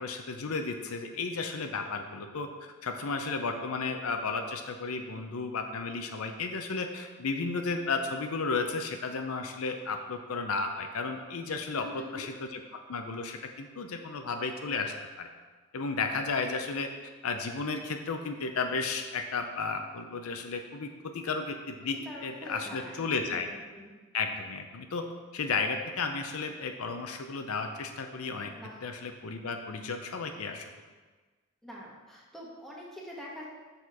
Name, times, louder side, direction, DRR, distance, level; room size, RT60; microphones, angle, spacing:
voice 1, 0.0-12.6 12.9-15.3 15.7-16.9 17.2-23.5 24.1-25.0 25.3-28.5 28.8-30.7, left 4 dB, 75° left, 5 dB, 0.6 m, -33 dB
voice 2, 11.7-12.3 22.0-24.0 28.6-28.8 31.6-33.5, left 1 dB, ahead, -5 dB, 1.1 m, -45 dB
6.6 x 4.3 x 4.7 m, 1.3 s
head